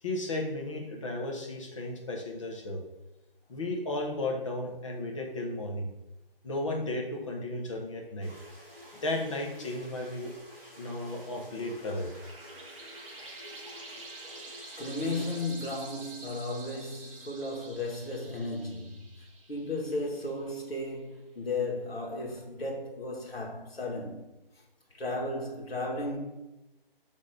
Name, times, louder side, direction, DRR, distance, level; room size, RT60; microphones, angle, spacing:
voice 1, 0.0-2.8 3.5-5.9 6.4-8.3 9.0-10.3 10.8-12.1, left 2 dB, 35° left, 1.1 m, -34 dB
sound 1, 8.2-15.4, left 1 dB, 5° right, 1.1 m, -50 dB
sound 2, 11.5-20.7, right 3 dB, 35° right, 1.3 m, -48 dB
voice 2, 14.8-19.1 19.5-24.3 24.9-26.2, left 2 dB, 85° left, 2.1 m, -34 dB
6.3 x 3.6 x 5.0 m
hypercardioid pair, 165°, 29 cm